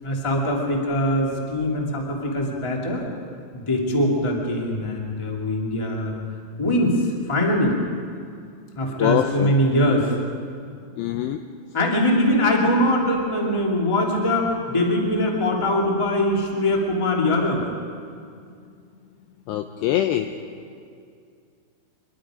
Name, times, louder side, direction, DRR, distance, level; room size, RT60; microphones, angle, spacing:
voice 1, 0.0-3.0 3.5-6.1 6.6-7.7 8.7-10.1 11.7-17.6, left 1 dB, 10° left, -1 dB, 1.4 m, -22 dB
voice 2, 9.0-9.5 11.0-11.4 19.5-20.3, left 12 dB, 85° left, 7 dB, 2.5 m, -23 dB
25.0 x 23.0 x 5.1 m, 2.3 s
omnidirectional pair, 5.6 m